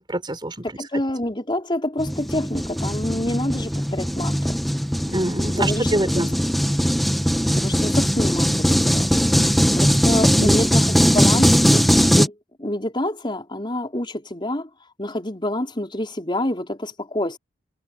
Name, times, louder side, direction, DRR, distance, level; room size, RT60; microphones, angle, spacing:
voice 1, 0.1-0.7 5.1-6.4 10.4-10.6, right 1 dB, 25° right, 4.1 m, -25 dB
voice 2, 0.6-4.6 5.6-6.3 7.5-9.1 9.7-14.7 15.0-17.4, left 1 dB, 25° left, 4.8 m, -27 dB
sound 1, 2.0-12.3, equal, ahead, 1.5 m, -19 dB
head